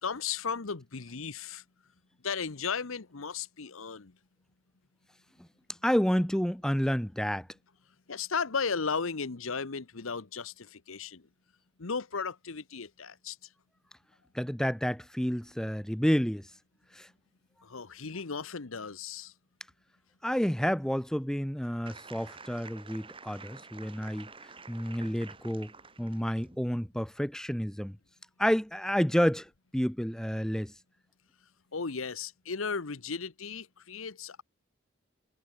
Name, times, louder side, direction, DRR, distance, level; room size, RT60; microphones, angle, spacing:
voice 1, 0.0-1.6 2.2-4.2 8.1-11.3 11.8-13.4 17.6-19.3 31.7-34.4, left 5 dB, 80° left, 1.0 m, -35 dB
voice 2, 5.8-7.5 14.3-16.5 16.9-17.1 20.2-24.3 24.7-25.7 26.0-28.0 28.4-30.7, equal, 5° left, 0.8 m, -29 dB
sound 1, 21.9-26.6, right 4 dB, 25° right, 4.6 m, -49 dB
head